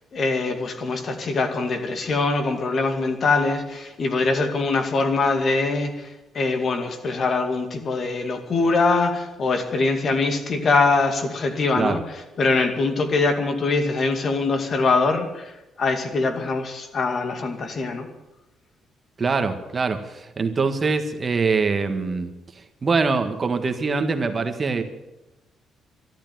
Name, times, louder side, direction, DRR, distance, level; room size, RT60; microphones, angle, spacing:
voice 1, 0.1-18.1, left 3 dB, 50° left, 6 dB, 2.3 m, -23 dB
voice 2, 19.2-24.8, right 4 dB, 35° right, 7 dB, 1.6 m, -24 dB
12.5 x 11.5 x 9.3 m, 1.0 s
cardioid pair, 90°, 0 cm